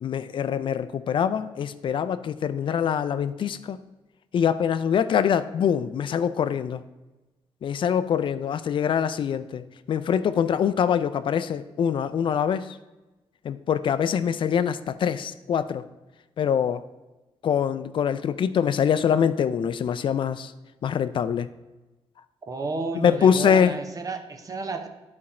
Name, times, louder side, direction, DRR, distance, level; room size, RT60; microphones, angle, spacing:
voice 1, 0.0-3.8 4.3-6.8 7.6-12.8 13.4-15.8 16.4-16.8 17.4-20.5 20.8-21.5 22.9-23.7, left 8 dB, 60° left, 12 dB, 0.4 m, -24 dB
voice 2, 22.5-24.9, right 3 dB, 35° right, 6 dB, 0.8 m, -31 dB
11.0 x 4.3 x 4.2 m, 1.1 s
cardioid pair, 115°, 10 cm